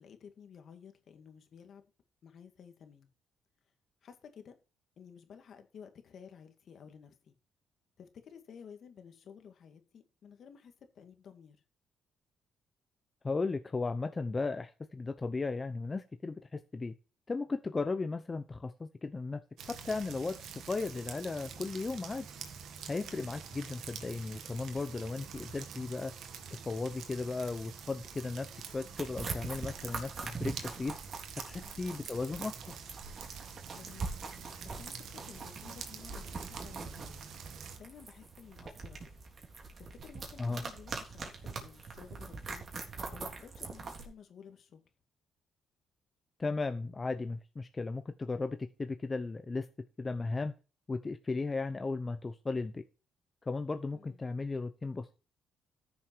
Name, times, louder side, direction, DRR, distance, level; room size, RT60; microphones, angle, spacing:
voice 1, 0.0-1.8 2.2-3.1 4.0-4.6 5.0-7.3 8.0-11.6 23.0-23.3 31.6-31.9 33.7-34.2 34.6-37.3 37.8-39.0 39.8-42.6 43.1-44.8 53.9-54.2, left 7 dB, 60° left, 2.2 m, -53 dB
voice 2, 13.2-16.9 17.3-22.3 22.9-26.1 26.7-30.9 31.5-32.5 40.4-40.6 46.4-49.7 50.0-50.5 50.9-52.8 53.5-55.1, left 3 dB, 25° left, 0.9 m, -36 dB
sound 1, 19.6-37.8, right 7 dB, 75° right, 2.0 m, -47 dB
sound 2, 29.0-44.1, right 4 dB, 45° right, 3.4 m, -43 dB
13.5 x 7.0 x 4.7 m
cardioid pair, 90°, 0 cm